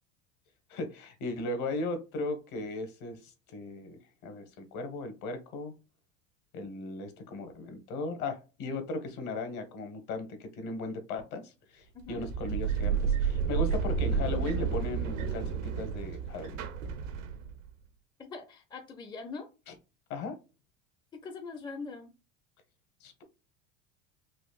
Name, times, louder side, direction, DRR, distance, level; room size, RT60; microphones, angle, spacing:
voice 1, 0.7-5.7 6.5-16.6 20.1-20.4 23.0-23.2, left 2 dB, 55° left, 7 dB, 1.2 m, -37 dB
sound 1, 12.0-17.7, right 6 dB, 90° right, 0.8 m, -31 dB
voice 2, 18.2-19.5 21.1-22.1, left 4 dB, 15° left, 6 dB, 0.5 m, -42 dB
4.1 x 2.5 x 2.3 m, 0.29 s
supercardioid pair, 115°, 37 cm